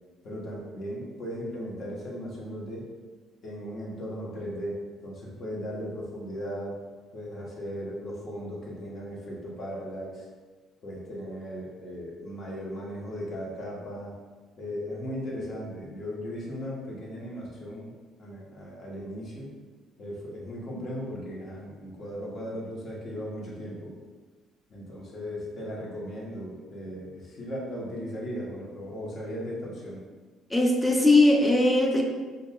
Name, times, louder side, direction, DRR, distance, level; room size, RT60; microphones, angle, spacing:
voice 1, 0.2-2.9 3.4-6.8 7.1-10.3 10.8-14.1 14.6-17.9 18.2-19.5 20.0-23.9 24.7-30.0, equal, 55° left, -4 dB, 1.1 m, -37 dB
voice 2, 30.5-32.0, left 2 dB, 10° left, 1 dB, 0.6 m, -20 dB
5.2 x 2.3 x 2.3 m, 1.4 s
supercardioid pair, 80°, 0 cm